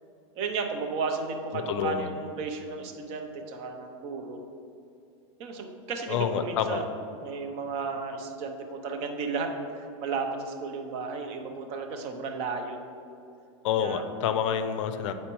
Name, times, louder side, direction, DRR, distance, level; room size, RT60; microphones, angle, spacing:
voice 1, 0.3-4.4 5.4-12.8 13.8-14.0, right 4 dB, 40° right, 4 dB, 0.6 m, -34 dB
voice 2, 1.7-2.1 6.1-6.8 13.6-15.1, left 8 dB, 65° left, 9 dB, 0.5 m, -28 dB
8.4 x 4.3 x 3.0 m, 2.7 s
supercardioid pair, 150°, 17 cm